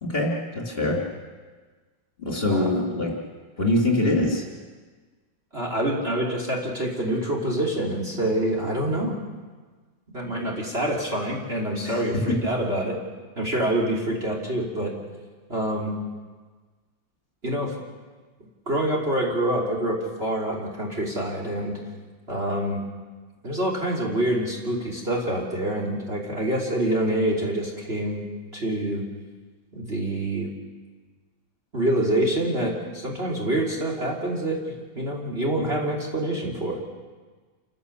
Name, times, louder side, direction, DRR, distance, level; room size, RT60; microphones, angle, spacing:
voice 1, 0.0-1.0 2.2-3.1 3.6-4.5 11.8-12.0, left 1 dB, 30° left, -2 dB, 3.9 m, -24 dB
voice 2, 5.5-9.1 10.1-13.0 13.4-14.9 15.5-15.9 17.4-17.7 18.7-21.8 22.3-22.8 23.4-28.2 28.5-29.0 29.7-30.5 31.7-36.8, right 1 dB, 30° right, -2 dB, 3.4 m, -26 dB
28.5 x 15.5 x 7.0 m, 1.4 s
omnidirectional pair, 2.1 m